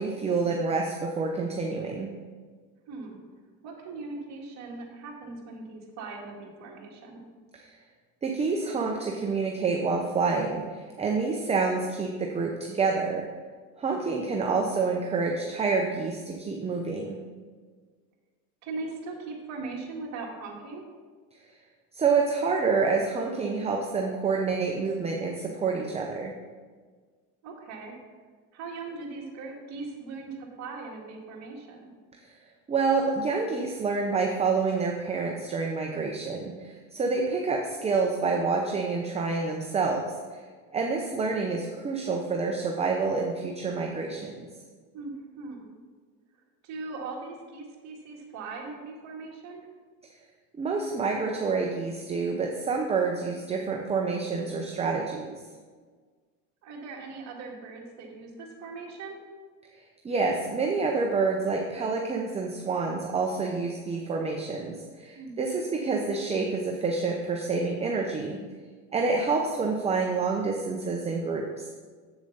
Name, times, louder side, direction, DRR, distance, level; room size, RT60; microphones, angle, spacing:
voice 1, 0.0-2.1 8.2-13.3 13.8-17.2 21.9-26.3 32.7-40.4 40.7-44.5 50.6-55.4 60.0-68.4 68.9-71.7, right 4 dB, 20° right, 1 dB, 0.7 m, -28 dB
voice 2, 2.9-3.2 3.6-7.2 18.6-20.8 27.4-28.0 28.5-31.9 44.9-45.7 46.6-49.6 56.6-59.2 65.1-65.4, right 3 dB, 50° right, -1 dB, 2.0 m, -39 dB
7.8 x 7.1 x 3.9 m, 1.5 s
cardioid pair, 130°, 34 cm